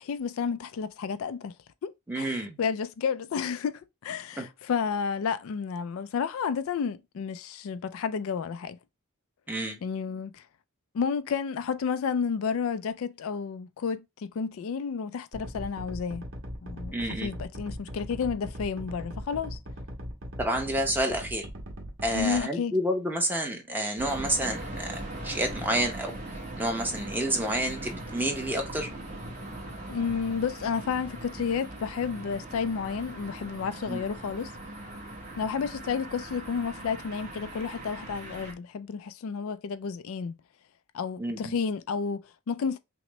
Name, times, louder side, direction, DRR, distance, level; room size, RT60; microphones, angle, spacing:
voice 1, 0.0-1.5 1.8-1.9 2.2-8.8 9.8-10.4 10.9-16.2 16.6-19.6 21.1-21.2 22.1-22.7 29.9-34.5 35.4-40.4 40.9-42.8, left 6 dB, 70° left, 0.3 m, -31 dB
voice 2, 2.1-2.6 4.4-4.5 9.5-9.8 16.9-17.3 20.4-21.5 22.0-26.2 26.6-28.9 33.9-34.0 41.2-41.5, right 1 dB, 10° right, 0.8 m, -29 dB
sound 1, 15.3-22.4, equal, 65° right, 1.2 m, -39 dB
sound 2, 24.0-38.5, right 1 dB, 35° right, 1.2 m, -40 dB
5.7 x 2.1 x 3.0 m
head